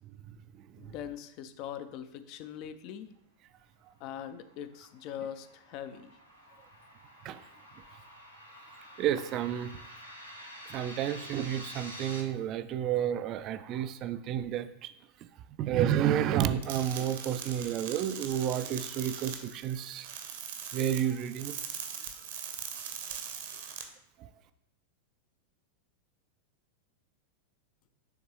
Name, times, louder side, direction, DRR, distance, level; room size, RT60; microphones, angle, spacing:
voice 1, 0.8-3.1 4.0-6.1, left 9 dB, 40° left, 12 dB, 0.5 m, -42 dB
sound 1, 4.5-12.2, equal, 85° left, 1.0 m, -48 dB
voice 2, 9.0-9.7 10.7-14.9 15.6-20.1 20.7-21.5 24.2-24.3, right 10 dB, 35° right, 12 dB, 0.3 m, -30 dB
sound 2, 16.6-23.8, right 8 dB, 55° right, 0.8 m, -41 dB
9.7 x 3.6 x 3.1 m, 0.77 s
figure-of-eight pair, 90°, 0 cm